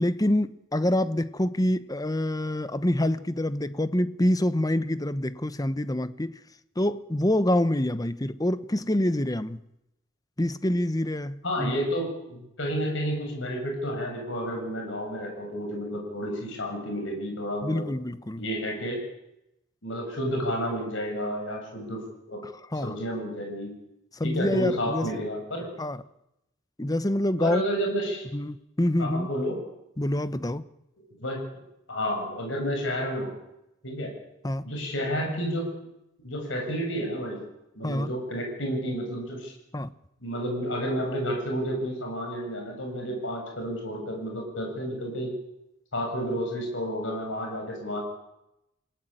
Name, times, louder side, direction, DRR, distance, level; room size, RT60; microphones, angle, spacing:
voice 1, 0.0-6.4 6.8-9.6 10.4-11.8 17.6-18.4 22.4-23.0 24.1-25.2 25.8-26.0 26.8-27.6 28.3-29.3 30.0-30.6 34.4-34.7 37.8-38.1 39.7-39.9, left 1 dB, 20° left, 1.0 m, -26 dB
voice 2, 11.4-17.8 18.4-19.0 19.8-22.0 22.3-22.4 22.8-23.7 24.2-25.7 27.4-28.3 29.0-29.6 31.2-31.4 31.9-33.3 33.8-34.1 34.6-35.7 36.2-37.4 37.7-39.5 40.2-45.3 45.9-48.0, equal, 70° left, 7.6 m, -30 dB
29.0 x 18.5 x 9.1 m
head